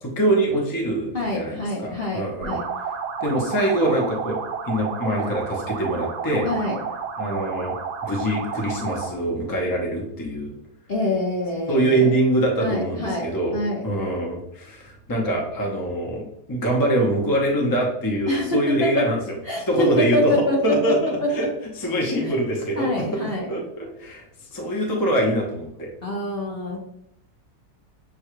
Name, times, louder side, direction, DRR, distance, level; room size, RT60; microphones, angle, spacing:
voice 1, 0.0-2.9 3.2-4.4 4.7-6.5 7.2-7.7 8.0-10.5 11.7-19.4 19.7-20.3 20.6-23.2 23.5-24.2 24.5-25.9, right 1 dB, 20° left, -1 dB, 0.6 m, -24 dB
voice 2, 1.1-2.6 6.4-6.8 10.9-12.1 12.6-13.8 18.3-19.0 19.5-20.9 21.2-21.5 22.2-22.4 22.8-23.5 26.0-26.8, left 1 dB, 45° left, -3 dB, 0.8 m, -25 dB
sound 1, 2.4-9.2, right 6 dB, 75° right, 1.2 m, -31 dB
6.9 x 2.3 x 3.1 m, 0.78 s
omnidirectional pair, 1.7 m